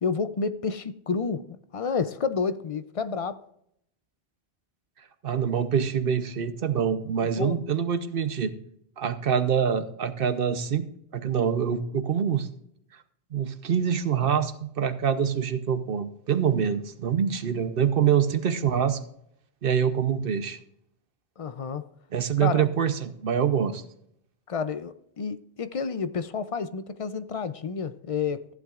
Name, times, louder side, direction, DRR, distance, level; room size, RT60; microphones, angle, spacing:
voice 1, 0.0-3.4 7.4-7.6 21.4-21.9 22.4-22.7 24.5-28.5, left 5 dB, 45° left, 0.5 m, -30 dB
voice 2, 5.2-8.5 9.0-10.9 11.1-12.5 13.3-19.0 19.6-20.6 22.1-23.8, right 7 dB, 60° right, 1.0 m, -25 dB
14.5 x 10.5 x 2.4 m
omnidirectional pair, 1.1 m